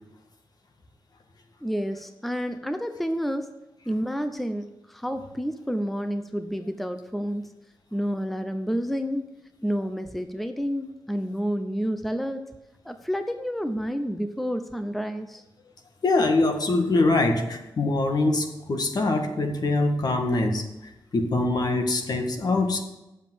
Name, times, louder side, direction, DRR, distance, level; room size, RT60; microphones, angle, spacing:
voice 1, 1.6-3.5 3.9-7.5 7.9-12.4 12.8-15.4 19.3-19.4, equal, ahead, 8 dB, 0.6 m, -29 dB
voice 2, 16.0-22.8, left 2 dB, 55° left, 4 dB, 1.6 m, -24 dB
8.1 x 7.1 x 7.5 m, 0.96 s
cardioid pair, 85°, 8 cm